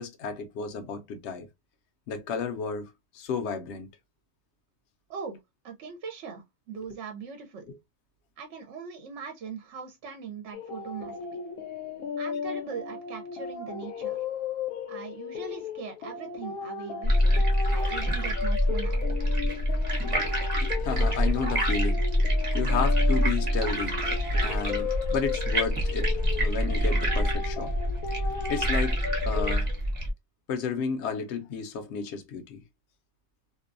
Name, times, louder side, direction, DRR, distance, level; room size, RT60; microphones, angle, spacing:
voice 1, 0.0-1.5 2.1-3.9 7.7-7.8 20.8-22.0 22.5-24.0 24.4-27.7 28.5-29.0 29.2-29.7 30.5-32.6, left 5 dB, 60° left, 0.9 m, -32 dB
voice 2, 5.1-7.7 8.4-11.4 12.2-14.2 14.9-19.0, right 6 dB, 65° right, 0.9 m, -41 dB
sound 1, 10.5-29.6, left 6 dB, 90° left, 1.1 m, -36 dB
sound 2, 17.0-30.1, equal, 30° right, 0.8 m, -26 dB
2.6 x 2.2 x 2.4 m
omnidirectional pair, 1.4 m